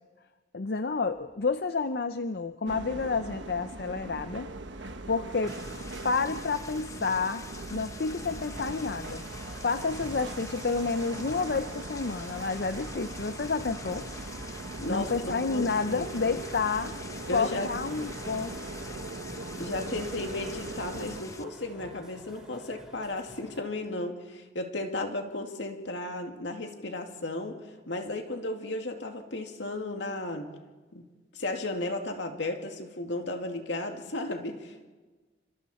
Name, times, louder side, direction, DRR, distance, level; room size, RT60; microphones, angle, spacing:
voice 1, 0.5-4.5 4.8-5.6 6.0-7.4 7.7-9.2 9.6-14.1 14.9-17.0 17.3-18.5, left 4 dB, 60° left, 10 dB, 0.6 m, -30 dB
sound 1, 2.7-21.2, right 2 dB, 80° right, 1.1 m, -40 dB
sound 2, 5.5-21.4, left 3 dB, 15° left, 0.8 m, -45 dB
sound 3, 8.3-23.6, equal, 5° right, 3.5 m, -52 dB
voice 2, 14.8-16.0 17.3-17.7 19.6-27.6 27.9-30.5 30.9-31.1 31.3-34.9, left 2 dB, 80° left, 4 dB, 2.3 m, -34 dB
28.5 x 25.5 x 4.3 m, 1.3 s
head